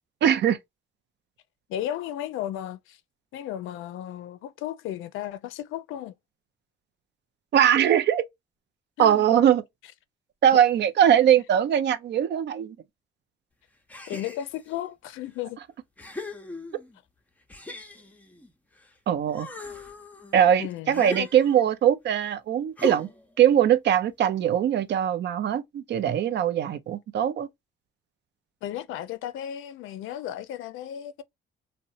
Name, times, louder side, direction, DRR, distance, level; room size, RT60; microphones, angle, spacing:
voice 1, 0.2-0.6 7.5-8.2 9.0-9.6 10.4-12.8 19.1-19.5 20.3-23.1 23.4-27.5, right 9 dB, 60° right, 0.5 m, -21 dB
voice 2, 1.7-3.0 3.3-6.1 9.0-9.4 14.1-15.6 20.6-21.3 28.6-31.2, left 11 dB, 85° left, 0.4 m, -34 dB
sound 1, 13.9-14.8 15.4-15.5 16.0-17.0 17.5-18.9 19.3-21.8 22.8-23.3, left 2 dB, 10° left, 0.6 m, -39 dB
2.7 x 2.1 x 2.4 m
cardioid pair, 90°, 20 cm